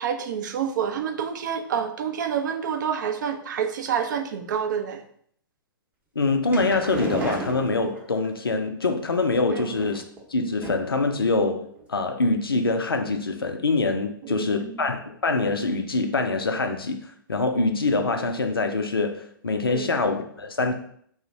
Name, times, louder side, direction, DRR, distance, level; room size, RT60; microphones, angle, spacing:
voice 1, 0.0-5.0 9.5-9.8 14.2-14.9 19.7-19.9, right 7 dB, 55° right, 0.4 m, -28 dB
voice 2, 6.2-10.0 10.3-17.0 17.3-20.7, left 3 dB, 85° left, 0.4 m, -24 dB
sound 1, 6.2-8.3 9.3-10.2 10.6-11.0 11.3-11.4 11.8-11.9, right 2 dB, 15° right, 0.7 m, -33 dB
2.4 x 2.1 x 3.8 m
figure-of-eight pair, 115°, 12 cm